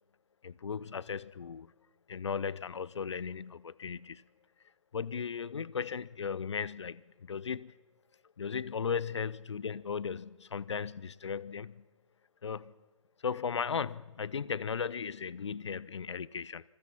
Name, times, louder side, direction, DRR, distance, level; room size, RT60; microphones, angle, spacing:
voice 1, 0.4-1.7 2.1-4.2 4.9-7.7 8.4-11.8 12.4-12.7 13.2-16.6, left 6 dB, 60° left, 0.7 m, -36 dB
25.0 x 20.0 x 5.8 m
figure-of-eight pair, 135°, 17 cm